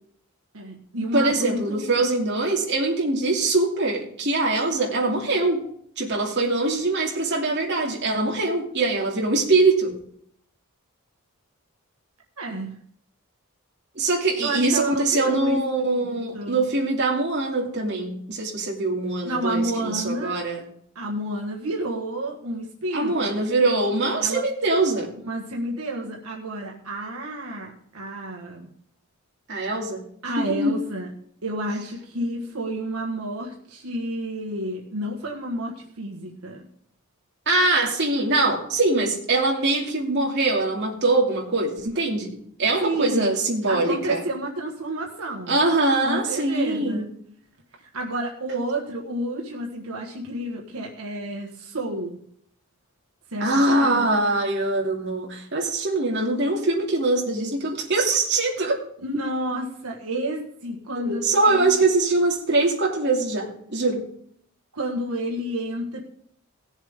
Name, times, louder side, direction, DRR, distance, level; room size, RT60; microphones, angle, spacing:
voice 1, 0.5-2.0 12.4-12.8 14.4-15.6 16.0-16.6 19.2-20.4 20.9-23.4 24.2-24.4 25.2-28.7 30.2-31.1 31.4-36.6 42.8-43.3 43.7-45.6 46.0-47.1 47.9-52.2 53.3-54.0 59.0-61.7 64.7-66.0, right 1 dB, 85° right, 0 dB, 1.6 m, -30 dB
voice 2, 1.1-5.6 6.0-10.0 13.9-20.6 22.9-25.1 29.5-30.0 30.4-30.8 37.5-42.3 42.6-44.2 45.5-47.0 53.4-58.8 60.9-64.0, right 2 dB, 50° right, -2 dB, 2.7 m, -23 dB
18.0 x 7.3 x 3.7 m, 0.66 s
head